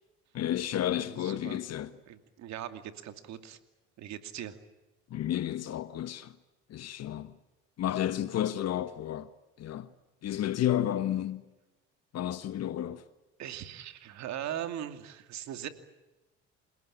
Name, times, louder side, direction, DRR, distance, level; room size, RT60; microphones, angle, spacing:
voice 1, 0.3-1.9 5.1-6.4 6.7-7.4 7.8-9.3 9.6-9.9 10.2-11.4 12.1-13.0, left 11 dB, 60° left, 1.3 m, -31 dB
voice 2, 1.2-1.6 2.1-3.6 4.0-4.6 13.4-15.7, right 11 dB, 70° right, 2.6 m, -39 dB
28.0 x 18.5 x 8.8 m
supercardioid pair, 75°, 29 cm